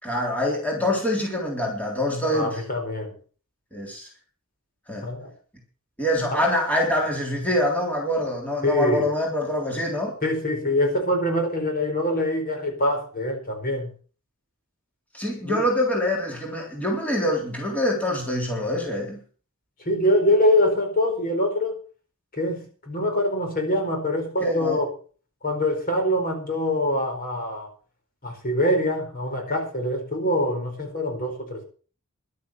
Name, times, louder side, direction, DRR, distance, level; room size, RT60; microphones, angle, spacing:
voice 1, 0.0-2.6 3.7-4.1 4.9-5.1 6.0-10.2 15.1-19.2 24.4-24.8, left 1 dB, 5° left, 3.6 m, -25 dB
voice 2, 2.3-3.2 5.0-5.3 6.3-6.4 8.6-9.1 10.2-13.9 15.4-15.7 19.8-21.8 22.3-24.9 25.4-27.7 28.2-31.6, left 1 dB, 45° left, 4.7 m, -24 dB
12.0 x 10.0 x 7.4 m
head